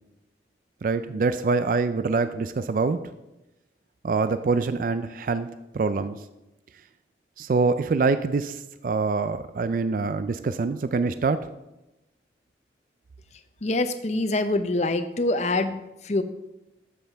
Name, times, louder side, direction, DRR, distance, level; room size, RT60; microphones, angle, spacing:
voice 1, 0.8-3.0 4.0-5.5 5.7-6.2 7.4-11.4, right 4 dB, 50° right, 11 dB, 0.3 m, -25 dB
voice 2, 13.6-16.2, left 2 dB, 40° left, 10 dB, 0.6 m, -25 dB
12.5 x 7.5 x 3.4 m, 0.95 s
head